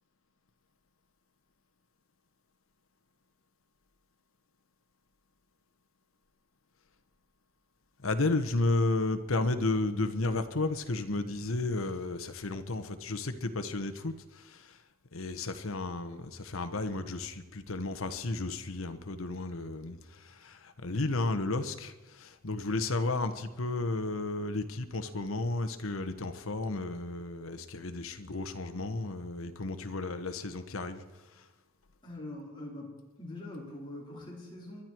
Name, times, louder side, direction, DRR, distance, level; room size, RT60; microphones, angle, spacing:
voice 1, 8.0-14.8 15.1-31.0 31.3-31.5, left 2 dB, 80° left, 9 dB, 1.2 m, -33 dB
voice 2, 32.0-34.8, left 1 dB, 25° left, -3 dB, 4.6 m, -43 dB
23.0 x 12.0 x 4.6 m, 1.2 s
head